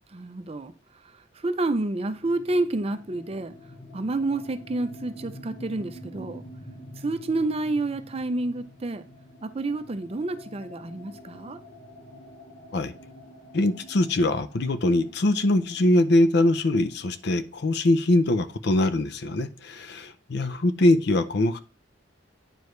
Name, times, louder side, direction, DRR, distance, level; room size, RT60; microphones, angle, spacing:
voice 1, 0.1-0.7 1.4-3.5 3.9-6.4 7.0-9.1 9.4-11.6, right 2 dB, 30° right, 0.5 m, -29 dB
sound 1, 1.9-17.5, equal, 25° left, 0.9 m, -47 dB
voice 2, 13.5-21.6, left 1 dB, 55° left, 0.5 m, -22 dB
9.2 x 4.8 x 3.2 m
head